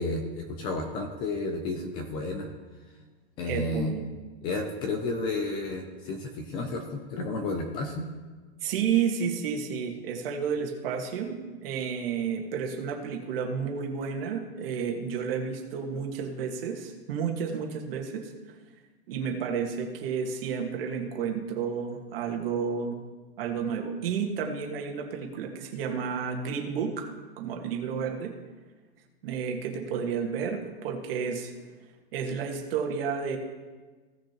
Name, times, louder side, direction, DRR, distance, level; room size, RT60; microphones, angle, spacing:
voice 1, 0.0-2.5 3.4-3.9 4.4-8.1, left 2 dB, 15° left, 4 dB, 0.4 m, -32 dB
voice 2, 3.4-4.1 8.6-18.3 19.1-23.0 23.4-27.1 27.4-28.3 29.2-31.5 32.1-33.4, right 6 dB, 60° right, 2 dB, 1.7 m, -31 dB
16.5 x 6.3 x 2.9 m, 1.3 s
supercardioid pair, 170°, 32 cm